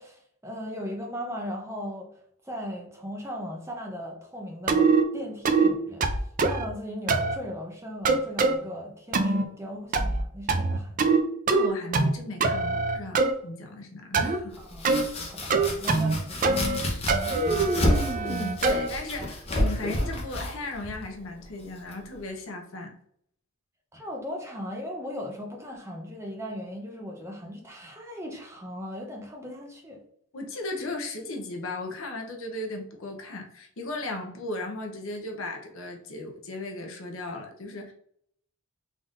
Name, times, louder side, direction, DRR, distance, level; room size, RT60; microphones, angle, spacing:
voice 1, 0.0-2.1 2.4-6.0 6.4-11.0 14.6-16.8 23.9-30.0, equal, 10° right, 0 dB, 0.7 m, -38 dB
sound 1, 4.7-5.0 5.5-5.7 6.0-6.7 7.1-7.4 8.1-8.6 9.1-9.5 9.9-10.2 10.5-11.2 11.5-12.1 12.4-13.3 14.1-14.4 14.8-15.0 15.5-16.2 16.4-16.8 17.1-18.9, right 4 dB, 40° right, 0.4 m, -23 dB
voice 2, 11.5-14.6 18.1-22.9 30.3-37.9, left 2 dB, 65° left, 3 dB, 0.8 m, -36 dB
Domestic sounds home sounds, 14.5-22.2, left 1 dB, 30° left, 0.8 m, -31 dB
3.9 x 3.6 x 2.5 m, 0.68 s
head